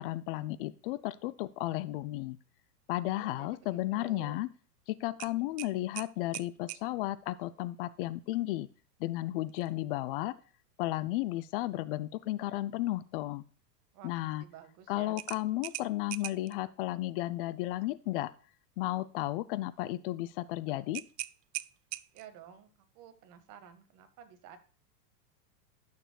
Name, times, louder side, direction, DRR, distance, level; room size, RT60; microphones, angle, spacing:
voice 1, 0.0-2.4 2.9-4.5 4.9-8.7 9.0-10.4 10.8-13.4 14.0-14.4 14.9-18.3 18.8-21.0, left 16 dB, 40° left, 16 dB, 0.4 m, -34 dB
voice 2, 3.1-4.4 13.9-15.2 22.1-22.7 22.9-24.6, right 9 dB, 40° right, 8 dB, 1.6 m, -52 dB
sound 1, 5.2-6.9 9.5-9.7 10.1-10.2 15.2-16.6 20.9-22.4, right 16 dB, 75° right, 0.6 m, -41 dB
12.0 x 6.7 x 2.3 m, 0.40 s
hypercardioid pair, 115°, 49 cm